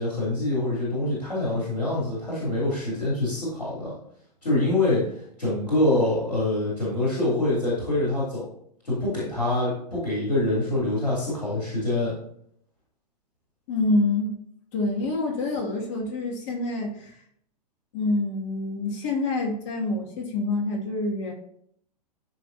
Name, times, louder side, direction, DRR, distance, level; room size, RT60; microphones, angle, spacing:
voice 1, 0.0-3.9 4.4-8.5 8.8-12.1, left 2 dB, 85° left, -7 dB, 3.4 m, -25 dB
voice 2, 13.7-14.3 14.7-17.1 17.9-21.3, left 2 dB, 45° left, 0 dB, 2.4 m, -26 dB
13.0 x 5.1 x 2.8 m, 0.68 s
figure-of-eight pair, 105°, 21 cm